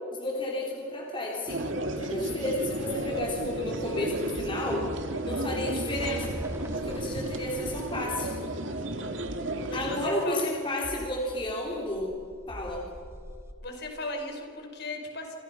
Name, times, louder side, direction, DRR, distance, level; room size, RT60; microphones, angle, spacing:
voice 1, 0.1-1.7 2.0-4.8 5.2-6.4 6.7-8.4 9.7-12.1 12.5-12.9, left 1 dB, 25° left, -2 dB, 3.6 m, -32 dB
sound 1, 1.5-10.1, right 1 dB, 70° right, 2.3 m, -33 dB
sound 2, 2.5-8.8 11.4-13.5, equal, 15° right, 1.7 m, -43 dB
sound 3, 4.3-4.6 5.0-5.1 5.9-6.2 6.6-6.7 7.6-7.8 8.2-8.3 9.2-9.5 9.8-9.9 10.8-11.1 11.5-11.6 12.5-12.7 13.1-13.2, equal, 10° left, 3.4 m, -44 dB
voice 2, 9.7-10.4 13.6-15.4, left 2 dB, 55° left, 3 dB, 5.1 m, -37 dB
27.5 x 27.5 x 5.8 m, 2.3 s
head